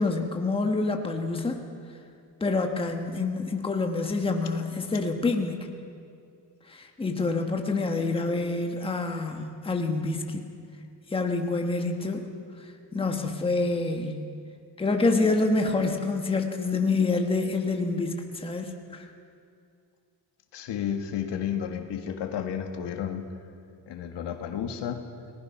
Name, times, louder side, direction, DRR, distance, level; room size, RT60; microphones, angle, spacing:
voice 1, 0.0-1.6 2.4-5.7 6.7-10.4 11.1-12.3 12.9-14.3 14.8-19.0, left 3 dB, 15° left, 3 dB, 1.3 m, -27 dB
voice 2, 20.5-23.3 23.9-25.1, left 8 dB, 85° left, 5 dB, 2.0 m, -32 dB
29.5 x 19.5 x 5.8 m, 2.4 s
cardioid pair, 170°, 41 cm